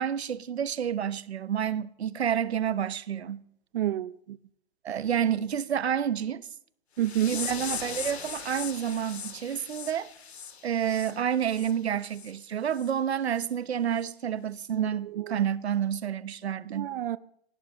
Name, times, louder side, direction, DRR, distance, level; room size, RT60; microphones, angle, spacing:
voice 1, 0.0-3.4 4.8-6.4 7.2-10.1 10.6-16.9, right 9 dB, 90° right, 1.1 m, -29 dB
voice 2, 3.7-4.4 7.0-7.4 14.7-15.5 16.7-17.2, right 12 dB, 60° right, 0.8 m, -30 dB
sound 1, 7.0-11.7 12.1-12.3 12.7-12.9 13.4-13.5 14.0-14.1, left 7 dB, 90° left, 2.8 m, -39 dB
24.5 x 17.5 x 3.1 m
hypercardioid pair, 150°, 31 cm